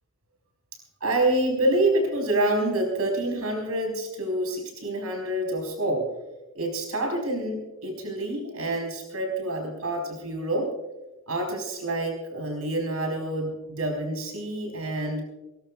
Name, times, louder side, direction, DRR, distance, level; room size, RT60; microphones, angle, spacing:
voice 1, 1.0-6.1 6.5-10.7 11.3-15.2, right 1 dB, 85° right, 1 dB, 4.5 m, -27 dB
23.0 x 19.0 x 2.4 m, 1.1 s
head